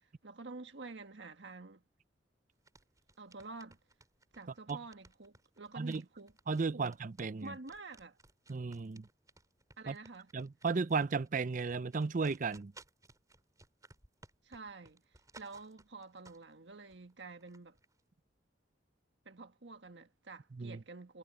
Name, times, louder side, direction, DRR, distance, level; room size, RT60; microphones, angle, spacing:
voice 1, 0.0-1.8 3.2-3.8 4.3-6.3 6.7-6.9 7.4-8.2 9.8-10.3 14.4-15.0 15.4-17.8 19.2-21.2, right 3 dB, 75° right, 1.6 m, -49 dB
sound 1, 2.5-16.6 16.9-18.0, right 2 dB, 20° right, 4.4 m, -60 dB
voice 2, 6.5-7.5 8.5-9.1 9.9-10.0 10.3-12.7 20.5-20.8, right 4 dB, 45° right, 0.5 m, -34 dB
head